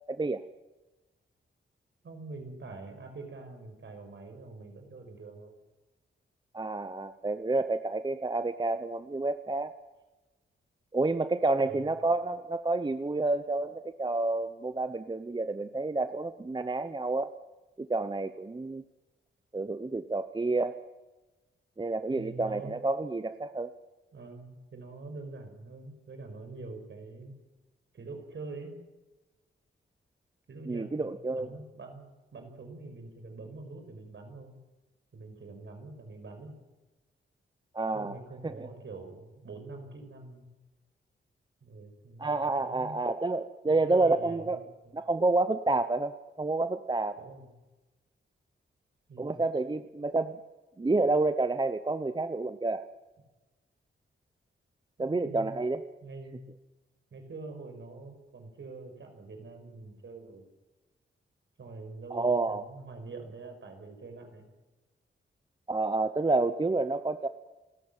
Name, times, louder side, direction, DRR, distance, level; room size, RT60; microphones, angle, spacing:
voice 1, 0.1-0.4 6.5-9.7 10.9-17.3 17.8-18.8 19.5-20.7 21.8-23.7 30.7-31.5 37.7-38.2 38.4-38.7 42.2-44.7 44.9-47.2 49.2-50.4 50.8-52.9 55.0-55.8 62.1-62.6 65.7-67.3, right 2 dB, 20° right, 11 dB, 0.8 m, -29 dB
voice 2, 2.0-5.5 11.6-11.9 22.1-22.8 24.1-27.3 27.9-28.7 30.5-34.6 35.1-36.6 37.9-40.5 41.6-42.3 42.6-43.0 43.7-44.9 47.2-47.5 49.1-49.4 55.0-55.6 56.0-56.5 57.1-60.5 61.6-64.5, right 3 dB, 60° right, 5 dB, 5.9 m, -45 dB
28.5 x 14.5 x 9.0 m, 1.1 s
wide cardioid pair, 95°, 21 cm